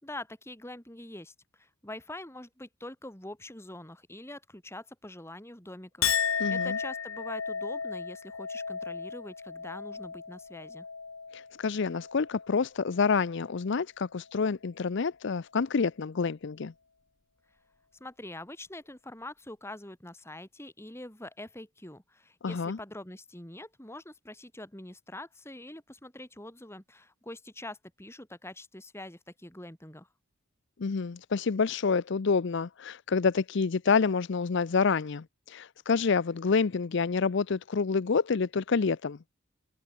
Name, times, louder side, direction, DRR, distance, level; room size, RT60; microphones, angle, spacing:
voice 1, 0.0-10.9 18.0-30.1, left 1 dB, 10° left, 2.9 m, -44 dB
Chink clink, 6.0-12.6 13.0-13.5, left 7 dB, 80° left, 2.1 m, -34 dB
voice 2, 6.4-6.8 11.3-16.7 22.4-22.8 30.8-39.2, left 5 dB, 55° left, 0.5 m, -28 dB
head